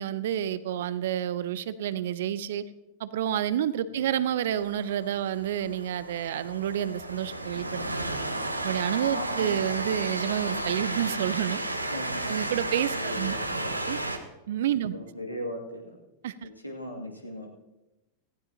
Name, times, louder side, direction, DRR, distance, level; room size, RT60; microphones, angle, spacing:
voice 1, 0.0-2.6 3.0-8.1 8.6-11.6 12.2-13.3 13.9-14.0 14.5-15.0 16.2-16.3, right 10 dB, 55° right, 16 dB, 0.6 m, -29 dB
Train, 4.4-14.2, right 2 dB, 85° right, 1.1 m, -33 dB
voice 2, 9.1-9.7 11.9-12.5 12.9-13.7 14.9-16.0 16.4-17.5, left 1 dB, 90° left, 1 dB, 2.3 m, -39 dB
18.0 x 15.5 x 2.9 m, 0.97 s
figure-of-eight pair, 90°, 0 cm